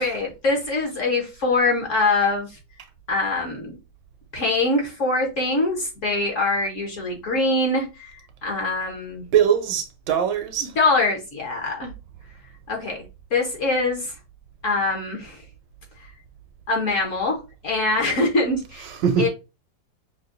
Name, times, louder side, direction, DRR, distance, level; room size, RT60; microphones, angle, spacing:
voice 1, 0.0-2.5 3.1-3.7 4.3-8.1 8.4-9.3 10.8-11.9 12.7-13.0 13.3-14.1 14.6-15.4 16.7-18.9 19.2-19.3, left 2 dB, 50° left, 1.1 m, -23 dB
voice 2, 9.3-10.7 18.9-19.3, right 8 dB, 75° right, 1.3 m, -21 dB
5.9 x 2.2 x 2.5 m
omnidirectional pair, 2.0 m